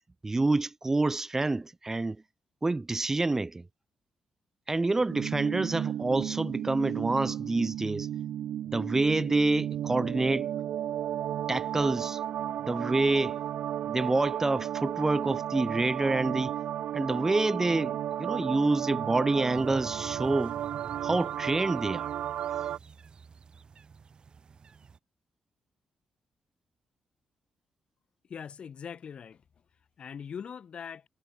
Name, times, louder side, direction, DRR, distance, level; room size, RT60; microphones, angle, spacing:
voice 1, 0.2-2.2 2.6-3.6 4.7-8.1 8.7-10.5 11.5-12.2 12.7-13.4 13.9-16.5 16.9-20.6 21.0-22.1, right 2 dB, 20° right, 0.5 m, -27 dB
sound 1, 5.1-22.8, right 11 dB, 85° right, 0.5 m, -34 dB
sound 2, 19.5-25.0, right 5 dB, 45° right, 2.1 m, -48 dB
voice 2, 28.3-29.4 30.0-31.0, left 7 dB, 55° left, 0.8 m, -41 dB
cardioid pair, 100°, 2 cm